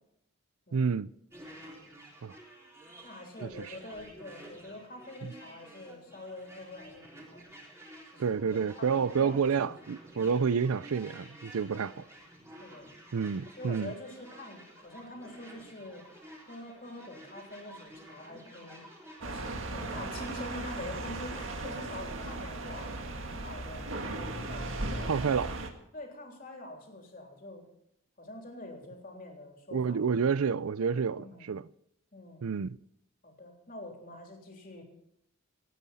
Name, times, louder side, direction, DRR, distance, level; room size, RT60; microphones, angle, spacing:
voice 1, 0.7-1.1 2.2-2.4 3.4-3.8 5.2-5.3 8.2-12.0 13.1-13.9 25.1-25.6 29.7-31.7 32.4-32.8, right 6 dB, 85° right, 0.5 m, -29 dB
sound 1, 1.3-20.6, right 1 dB, 15° right, 3.6 m, -52 dB
voice 2, 3.0-7.4 8.1-9.7 10.2-10.5 11.9-12.0 12.6-12.9 13.6-16.1 16.4-18.9 19.2-23.0 23.3-25.2 25.9-27.7 28.2-30.0 31.1-31.5 32.1-32.5 33.2-34.8, left 1 dB, 40° left, 3.5 m, -45 dB
sound 2, 19.2-25.7, right 2 dB, 65° right, 1.8 m, -37 dB
27.0 x 9.5 x 4.2 m
head